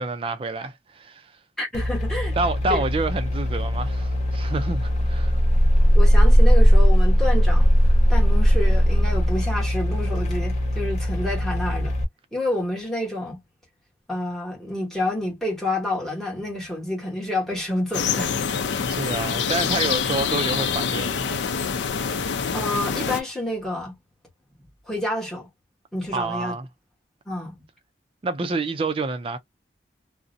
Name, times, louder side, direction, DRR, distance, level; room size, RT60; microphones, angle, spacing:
voice 1, 0.0-1.3 2.4-5.4 18.9-21.4 26.1-26.7 28.2-29.4, right 3 dB, 30° right, 0.3 m, -28 dB
voice 2, 1.6-2.4 2.7-2.8 5.9-11.9 12.3-13.4 14.1-18.3 22.5-24.0 24.8-25.5 25.9-26.6 27.3-27.6, left 1 dB, ahead, 1.1 m, -28 dB
sound 1, 1.7-12.0, equal, 40° left, 0.6 m, -19 dB
sound 2, 17.9-23.2, left 6 dB, 85° left, 0.4 m, -25 dB
2.5 x 2.0 x 2.5 m
head